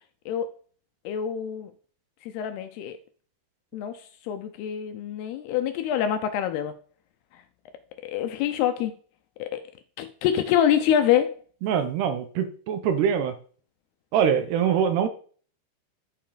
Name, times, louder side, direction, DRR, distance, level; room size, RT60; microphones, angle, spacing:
voice 1, 1.1-1.7 2.2-3.0 3.7-6.7 8.0-8.9 9.4-9.7 10.0-11.4, left 9 dB, 80° left, 2.5 m, -26 dB
voice 2, 11.6-13.4 14.1-15.1, right 8 dB, 70° right, 3.0 m, -23 dB
11.5 x 6.9 x 5.1 m
omnidirectional pair, 5.2 m